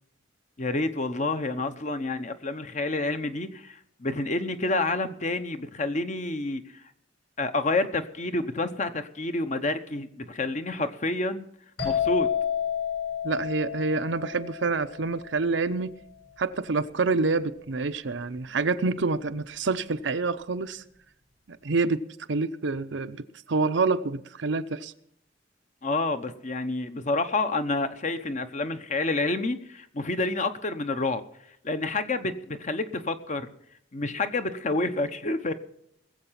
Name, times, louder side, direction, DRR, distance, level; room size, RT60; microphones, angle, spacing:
voice 1, 0.6-6.6 7.4-11.4 11.8-12.3 25.8-31.2 31.6-33.5 33.9-35.5, left 2 dB, 40° left, 0.9 m, -28 dB
sound 1, 11.8-15.4, left 8 dB, 65° left, 7.7 m, -30 dB
voice 2, 13.2-15.9 16.4-20.8 21.5-22.0 22.3-24.9, right 3 dB, 75° right, 0.7 m, -27 dB
20.0 x 7.9 x 5.8 m
head